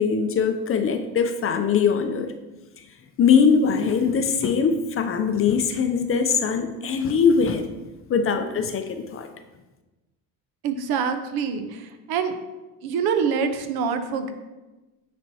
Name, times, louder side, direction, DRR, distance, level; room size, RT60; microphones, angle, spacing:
voice 1, 0.0-2.3 3.2-7.6 8.1-9.3, left 6 dB, 35° left, 7 dB, 0.5 m, -21 dB
voice 2, 10.6-12.3 12.8-14.3, right 6 dB, 65° right, 8 dB, 0.8 m, -25 dB
9.3 x 4.3 x 2.8 m, 1.1 s
cardioid pair, 110°, 39 cm